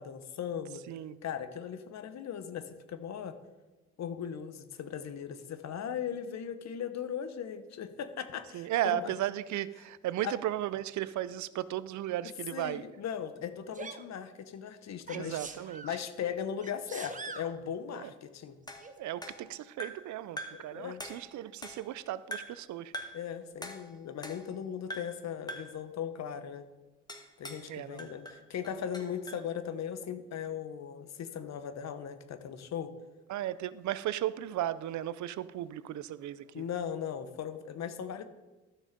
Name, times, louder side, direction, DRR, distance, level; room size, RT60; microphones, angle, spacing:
voice 1, 0.0-0.8 1.2-3.3 4.0-9.1 10.2-10.3 12.5-15.4 15.8-18.6 20.5-21.0 23.1-26.6 27.4-32.9 36.5-38.2, left 8 dB, 60° left, 1.0 m, -38 dB
voice 2, 8.5-12.8 15.1-15.8 17.9-18.1 19.0-22.9 27.7-28.1 33.3-36.7, right 13 dB, 70° right, 0.5 m, -35 dB
Sneeze, 13.7-14.0 15.1-16.0 16.6-17.5 18.8-18.9, right 4 dB, 25° right, 0.9 m, -43 dB
sound 1, 18.7-20.1 20.4-20.7 21.0-22.0 22.3-22.6 22.9-23.3 23.6-24.6 24.9-25.2 25.5-25.8 27.1-27.7 28.0-29.5, equal, 15° left, 1.7 m, -44 dB
13.0 x 6.3 x 5.2 m
cardioid pair, 90°, 30 cm